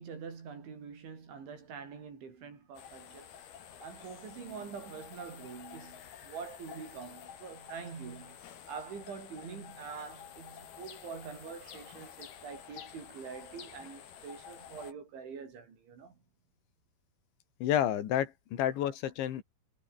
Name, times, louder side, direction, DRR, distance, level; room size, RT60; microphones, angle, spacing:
voice 1, 0.0-3.3 3.8-16.2, right 6 dB, 85° right, 8.2 m, -45 dB
sound 1, 2.7-14.9, left 9 dB, 60° left, 4.5 m, -50 dB
voice 2, 17.6-19.4, left 11 dB, 80° left, 4.5 m, -30 dB
omnidirectional pair, 5.2 m